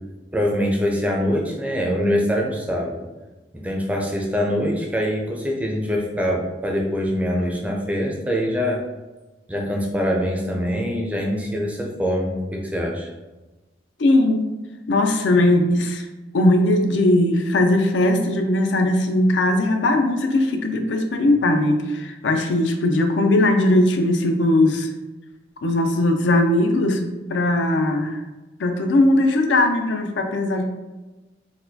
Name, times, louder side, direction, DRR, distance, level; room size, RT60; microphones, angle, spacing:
voice 1, 0.3-3.0 3.5-8.8 9.5-13.1, equal, 10° right, -1 dB, 0.4 m, -24 dB
voice 2, 14.0-14.5 14.9-16.1 16.3-24.9 25.6-27.0 27.3-28.2 28.6-30.7, left 1 dB, 80° left, 5 dB, 0.4 m, -19 dB
4.1 x 2.2 x 2.7 m, 1.1 s
head